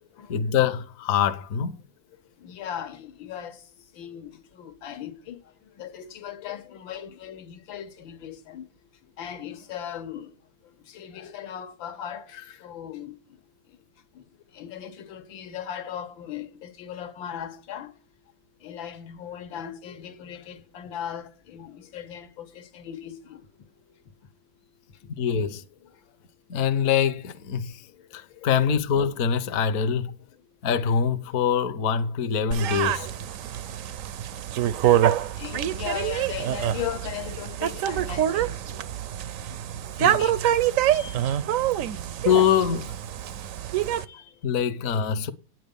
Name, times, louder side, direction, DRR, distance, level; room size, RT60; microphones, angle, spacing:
voice 1, 0.3-1.8 25.2-25.6 26.5-27.9 28.1-30.1 30.6-33.1 40.0-40.3 42.2-43.0 44.4-45.3, left 7 dB, 55° left, 1.1 m, -24 dB
voice 2, 2.4-3.6 3.9-8.7 9.2-10.3 10.8-13.4 14.1-14.2 14.5-17.9 18.6-23.5 24.9-25.0 25.8-25.9 28.0-28.5 33.5-34.0 34.3-34.6 35.4-39.0 39.4-39.6 40.2-40.4 40.9-41.3 43.7-44.4, left 10 dB, 85° left, 1.8 m, -38 dB
sound 1, 32.5-44.0, right 11 dB, 75° right, 0.7 m, -26 dB
9.3 x 8.9 x 5.2 m
omnidirectional pair, 2.1 m